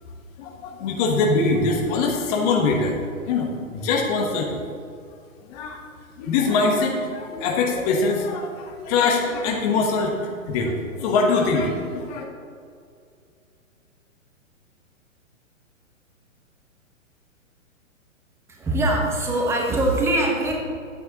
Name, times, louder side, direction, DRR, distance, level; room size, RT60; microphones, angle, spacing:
voice 1, 0.4-3.0 3.2-4.7 5.5-5.8 6.2-12.2, left 3 dB, 30° left, 0 dB, 1.2 m, -23 dB
voice 2, 18.5-20.5, right 1 dB, 5° right, -1 dB, 1.0 m, -22 dB
11.5 x 9.4 x 2.9 m, 2.3 s
figure-of-eight pair, 125°, 40 cm